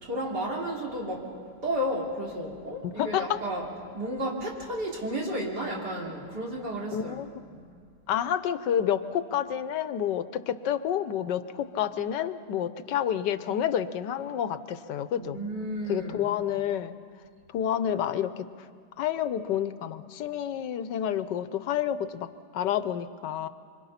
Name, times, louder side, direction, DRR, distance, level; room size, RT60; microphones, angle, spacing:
voice 1, 0.0-1.3 1.6-7.7 15.2-16.3, equal, 70° right, -3 dB, 4.0 m, -33 dB
voice 2, 2.8-3.4 6.9-7.3 8.1-15.4 15.9-16.9 17.5-18.5 19.0-23.5, left 10 dB, 85° left, 12 dB, 1.4 m, -29 dB
25.5 x 25.0 x 5.8 m, 2.1 s
omnidirectional pair, 1.9 m